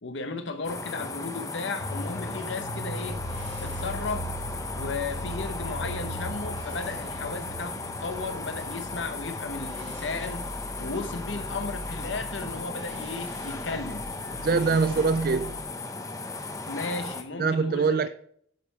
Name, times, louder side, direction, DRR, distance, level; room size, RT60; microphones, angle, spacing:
voice 1, 0.0-3.2 3.6-4.3 4.7-10.5 10.8-14.0 16.7-18.1, left 3 dB, 80° left, 0.9 m, -35 dB
sound 1, 0.6-17.2, left 3 dB, 15° left, 0.7 m, -36 dB
sound 2, 1.8-11.7 11.9-12.0, right 1 dB, 60° left, 1.2 m, -40 dB
sound 3, 2.8-15.6, equal, 85° right, 2.7 m, -42 dB
voice 2, 14.4-15.5 17.4-18.1, right 4 dB, 50° right, 0.4 m, -23 dB
8.4 x 6.6 x 4.5 m
head